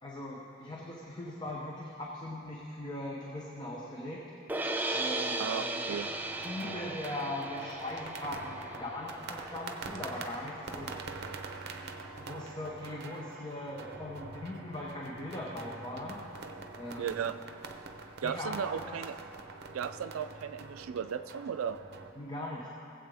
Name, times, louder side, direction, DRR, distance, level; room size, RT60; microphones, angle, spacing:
voice 1, 0.0-4.2 4.9-6.0 6.4-11.0 12.2-16.2 16.7-17.2 18.2-18.9 22.2-22.7, left 1 dB, 20° left, -3 dB, 0.9 m, -40 dB
sound 1, 4.5-10.7, right 2 dB, 10° right, 0.4 m, -37 dB
voice 2, 5.4-6.1 17.0-17.4 18.2-19.2 19.7-21.8, right 7 dB, 85° right, 12 dB, 0.4 m, -35 dB
sound 2, 5.9-22.1, right 3 dB, 55° right, 0.7 m, -45 dB
18.0 x 7.9 x 3.4 m, 2.8 s
head